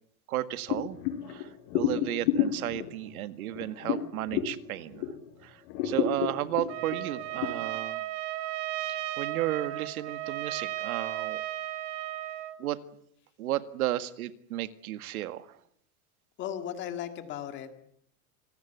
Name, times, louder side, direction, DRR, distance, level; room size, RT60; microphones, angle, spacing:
voice 1, 0.3-1.0 1.3-5.1 5.4-8.0 8.8-11.4 12.6-12.8 13.4-15.6, right 13 dB, 85° right, 12 dB, 1.9 m, -33 dB
sound 1, 0.7-5.3 5.7-7.5, left 10 dB, 45° left, 5.1 m, -31 dB
Trumpet, 6.7-12.6, right 15 dB, 45° right, 1.8 m, -35 dB
voice 2, 16.4-17.7, left 10 dB, 25° left, 8 dB, 1.9 m, -36 dB
26.5 x 20.0 x 8.2 m, 0.71 s
supercardioid pair, 170°, 42 cm